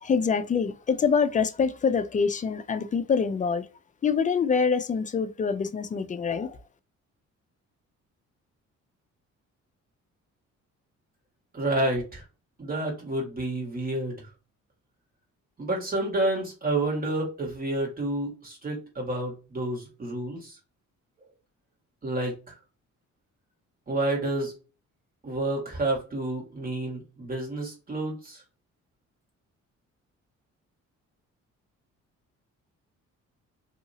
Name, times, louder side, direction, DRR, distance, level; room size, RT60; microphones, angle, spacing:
voice 1, 0.0-3.7 4.0-6.6, left 6 dB, 25° left, 0.4 m, -25 dB
voice 2, 11.5-12.2 12.6-14.3 15.6-20.6 22.0-22.5 23.9-24.5 25.2-28.4, right 2 dB, 30° right, 1.7 m, -29 dB
2.8 x 2.6 x 2.7 m
cardioid pair, 90°, 30 cm